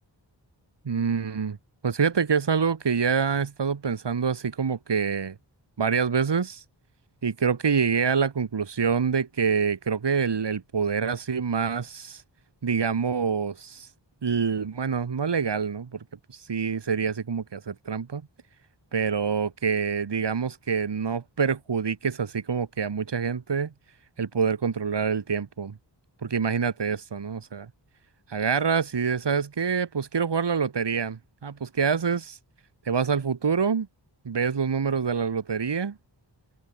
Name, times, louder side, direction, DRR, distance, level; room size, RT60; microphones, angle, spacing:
voice 1, 0.8-1.6 1.8-5.4 5.8-6.6 7.2-12.2 12.6-13.9 14.2-16.0 16.3-18.2 18.9-23.7 24.2-25.8 26.2-27.7 28.3-32.4 32.8-33.9 34.2-36.0, right 6 dB, 65° right, 1.6 m, -26 dB
wide cardioid pair, 80°, 45 cm